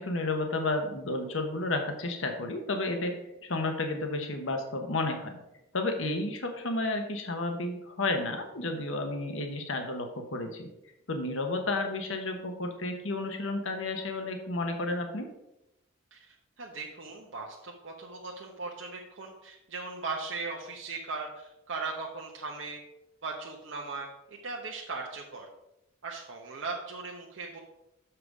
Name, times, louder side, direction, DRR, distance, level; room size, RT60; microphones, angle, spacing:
voice 1, 0.0-5.4 5.7-10.7 11.1-15.3, left 2 dB, 70° left, 5 dB, 1.1 m, -32 dB
voice 2, 16.1-22.8 23.2-25.5 26.0-27.6, right 3 dB, 65° right, 0 dB, 0.9 m, -38 dB
6.8 x 5.8 x 4.9 m, 0.87 s
head